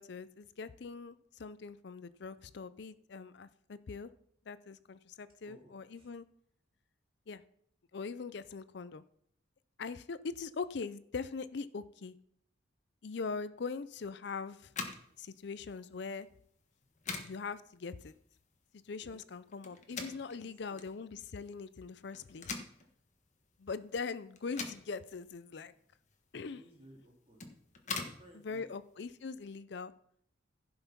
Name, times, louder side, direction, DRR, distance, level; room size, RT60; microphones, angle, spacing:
voice 1, 0.0-4.1 4.5-6.3 7.3-7.4 7.9-9.0 9.8-12.1 13.0-14.7 15.2-16.3 17.2-18.2 18.7-22.6 23.6-25.7 26.3-26.6 28.3-29.9, left 4 dB, 60° left, 15 dB, 0.5 m, -42 dB
voice 2, 5.4-6.1 19.0-19.2 20.3-20.8 25.7-25.8 26.5-27.4 27.9-28.7, right 1 dB, 30° right, -1 dB, 3.2 m, -59 dB
sound 1, 14.6-29.6, left 4 dB, 40° left, 1.4 m, -46 dB
15.5 x 5.8 x 5.8 m, 0.68 s
head